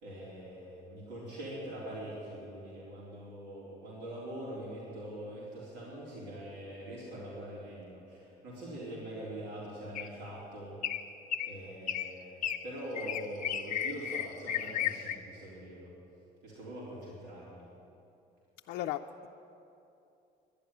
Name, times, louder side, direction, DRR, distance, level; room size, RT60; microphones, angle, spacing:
voice 1, 0.0-10.7 11.5-15.9 16.4-17.6, right 1 dB, 80° right, -7 dB, 4.0 m, -43 dB
sound 1, 9.9-10.3 10.8-11.1 11.3-11.5 11.9-12.1 12.4-12.6 13.0-15.1, left 10 dB, 50° left, 0.8 m, -34 dB
voice 2, 18.7-19.3, left 13 dB, 85° left, 4 dB, 0.5 m, -36 dB
12.0 x 10.0 x 9.6 m, 2.7 s
cardioid pair, 110°, 17 cm